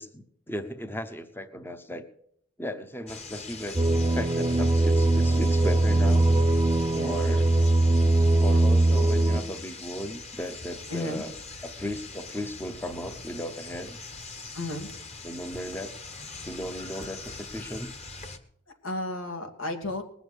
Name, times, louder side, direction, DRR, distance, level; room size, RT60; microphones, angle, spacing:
voice 1, 0.0-2.1 2.6-6.6 7.0-7.5 8.4-11.4 11.6-14.0 15.2-15.9 16.4-17.9, left 1 dB, 10° left, 9 dB, 0.8 m, -36 dB
sound 1, 3.1-18.4, left 3 dB, 30° left, 1.2 m, -42 dB
sound 2, 3.7-9.4, right 2 dB, 25° right, 0.6 m, -21 dB
voice 2, 6.9-7.4 10.9-11.2 14.5-14.9 18.8-20.0, left 1 dB, 85° left, 4 dB, 2.4 m, -33 dB
20.0 x 7.0 x 8.1 m, 0.71 s
head